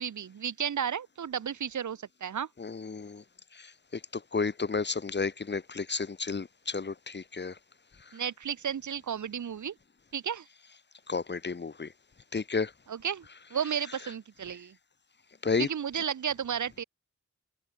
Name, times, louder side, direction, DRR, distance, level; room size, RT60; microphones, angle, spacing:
voice 1, 0.0-2.5 8.1-9.7 10.1-10.5 12.9-13.3 13.5-14.7 15.6-16.8, right 8 dB, 80° right, 0.8 m, -33 dB
voice 2, 2.6-3.2 4.3-7.5 11.1-11.9 12.3-12.7 15.4-15.7, left 4 dB, 40° left, 0.8 m, -31 dB
wide cardioid pair, 90°, 29 cm